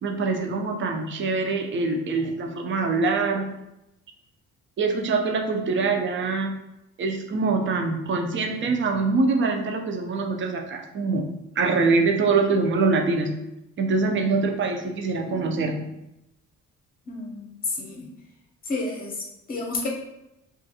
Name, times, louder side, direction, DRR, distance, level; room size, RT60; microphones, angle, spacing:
voice 1, 0.0-3.5 4.8-6.5 7.0-11.3 11.6-13.3 13.8-15.9, right 3 dB, 40° right, 3 dB, 0.5 m, -24 dB
voice 2, 17.1-18.1 18.6-19.9, left 3 dB, 30° left, -1 dB, 0.7 m, -31 dB
2.5 x 2.4 x 2.7 m, 0.88 s
cardioid pair, 90°, 30 cm